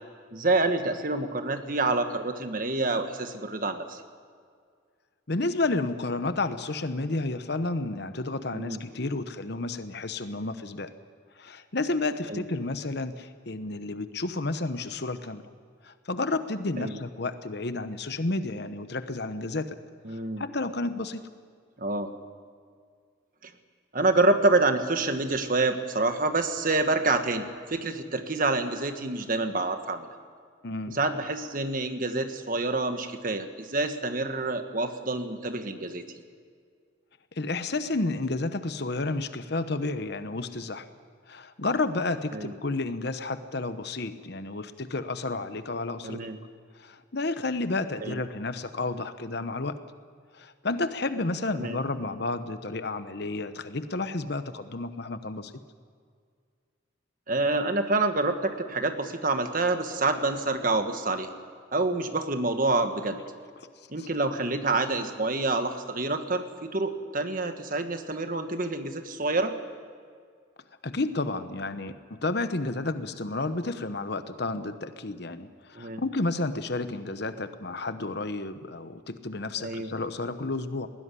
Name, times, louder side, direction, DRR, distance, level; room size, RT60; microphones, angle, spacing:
voice 1, 0.3-4.0 8.5-8.8 12.3-12.4 16.8-17.0 20.0-20.4 21.8-22.1 23.4-23.5 23.9-30.1 30.9-36.0 42.3-42.5 46.0-46.4 48.0-48.2 51.5-51.8 57.3-61.3 61.7-63.2 63.9-69.5 75.8-76.0 79.6-79.9, right 2 dB, 40° right, 7 dB, 1.5 m, -27 dB
voice 2, 5.3-10.9 11.4-15.4 15.8-19.8 20.1-21.2 30.6-31.0 37.4-40.8 41.3-46.2 46.8-49.7 50.4-55.5 64.0-64.1 70.8-80.9, left 2 dB, 55° left, 11 dB, 1.0 m, -31 dB
20.0 x 16.5 x 9.8 m, 2.1 s
head